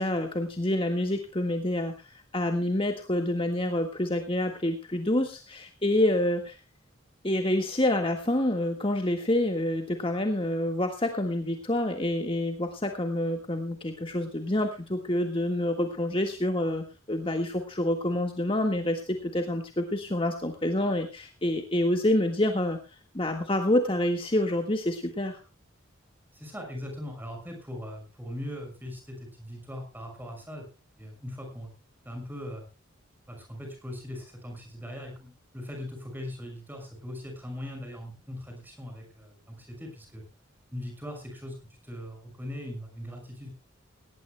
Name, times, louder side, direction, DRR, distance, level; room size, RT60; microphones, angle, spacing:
voice 1, 0.0-6.6 7.2-22.8 23.1-25.4, left 1 dB, 25° left, 4 dB, 1.6 m, -27 dB
voice 2, 26.3-30.7 31.0-31.7 32.0-32.7 33.3-40.2 40.7-43.5, left 1 dB, 10° right, 3 dB, 6.1 m, -40 dB
19.0 x 18.0 x 2.2 m, 0.31 s
head